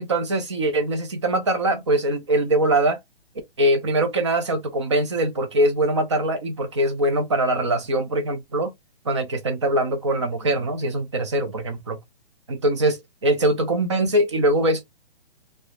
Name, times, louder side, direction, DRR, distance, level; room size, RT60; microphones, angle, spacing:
voice 1, 0.0-3.0 3.6-8.7 9.1-12.0 12.5-14.8, right 1 dB, 30° right, 0.5 m, -22 dB
2.4 x 2.1 x 2.8 m
hypercardioid pair, 165°, 31 cm